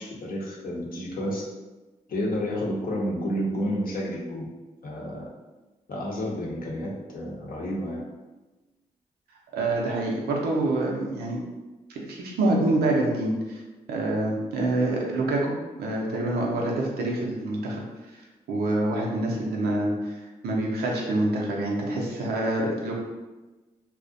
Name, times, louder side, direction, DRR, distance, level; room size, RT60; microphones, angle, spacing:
voice 1, 0.0-1.4 2.1-4.5 4.8-5.3 5.9-8.0, equal, 65° left, -3 dB, 0.7 m, -30 dB
voice 2, 9.5-11.4 11.9-13.6 13.9-15.5 15.8-17.8 18.1-23.0, right 2 dB, 90° right, -1 dB, 0.5 m, -26 dB
2.4 x 2.0 x 2.5 m, 1.1 s
supercardioid pair, 45°, 16 cm